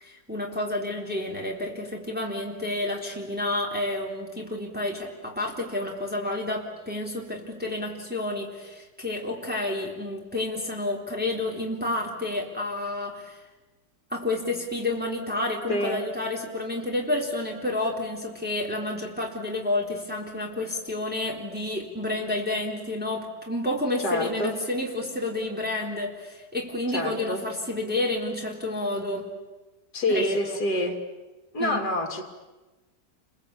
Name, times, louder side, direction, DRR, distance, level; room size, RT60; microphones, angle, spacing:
voice 1, 0.0-13.4 14.1-29.3 30.1-30.6 31.6-31.8, left 2 dB, 5° right, -2 dB, 3.8 m, -30 dB
voice 2, 15.7-16.0 24.0-24.6 26.9-27.5 29.9-31.0 31.5-32.2, left 1 dB, 60° left, 4 dB, 3.6 m, -27 dB
29.5 x 23.0 x 8.6 m, 1.2 s
omnidirectional pair, 1.9 m